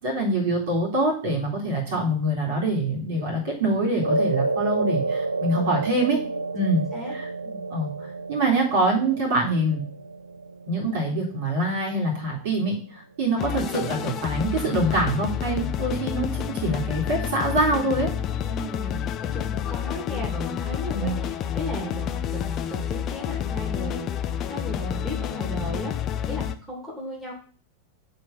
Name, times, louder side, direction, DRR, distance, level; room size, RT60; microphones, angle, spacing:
voice 1, 0.0-6.2 6.5-6.8 7.1-7.3 7.7-7.9 8.3-9.8 10.7-18.1 20.9-21.2, right 1 dB, 55° right, -2 dB, 3.7 m, -25 dB
sound 1, 4.0-12.5, right 2 dB, 80° right, 0.3 m, -30 dB
sound 2, 13.4-26.6, left 9 dB, 30° left, 0.6 m, -29 dB
voice 2, 18.4-24.1 24.5-25.9 26.3-27.3, equal, 5° right, -3 dB, 2.5 m, -35 dB
7.5 x 3.5 x 5.8 m, 0.43 s
figure-of-eight pair, 90°, 0 cm